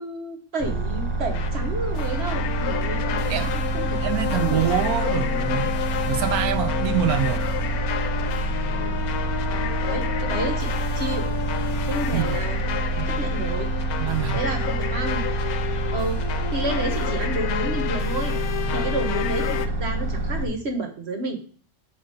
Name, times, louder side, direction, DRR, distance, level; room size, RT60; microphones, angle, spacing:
voice 1, 0.0-4.1 4.3-4.6 8.7-9.0 9.8-11.3 11.8-12.8 13.1-13.7 14.3-15.2 15.9-16.2 16.5-18.4 18.7-21.4, right 2 dB, 50° right, 1.3 m, -31 dB
sound 1, 0.6-20.4, right 2 dB, 20° right, 0.8 m, -27 dB
sound 2, 1.3-19.7, left 9 dB, 85° left, 1.1 m, -30 dB
voice 2, 4.0-5.8 6.1-7.5 12.1-12.4 13.0-13.4 14.0-14.4 18.7-18.9, right 10 dB, 80° right, 1.1 m, -26 dB
6.5 x 4.0 x 5.1 m
omnidirectional pair, 1.5 m